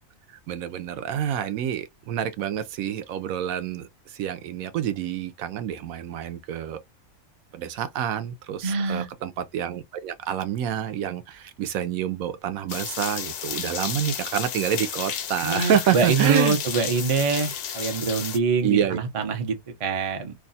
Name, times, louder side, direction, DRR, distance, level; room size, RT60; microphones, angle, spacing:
voice 1, 0.3-6.8 7.5-16.6 18.6-19.0, right 9 dB, 75° right, 1.0 m, -28 dB
voice 2, 8.6-9.1 15.4-20.3, right 4 dB, 35° right, 0.5 m, -24 dB
sound 1, 12.7-18.4, left 8 dB, 65° left, 0.6 m, -32 dB
2.7 x 2.3 x 3.9 m
omnidirectional pair, 1.5 m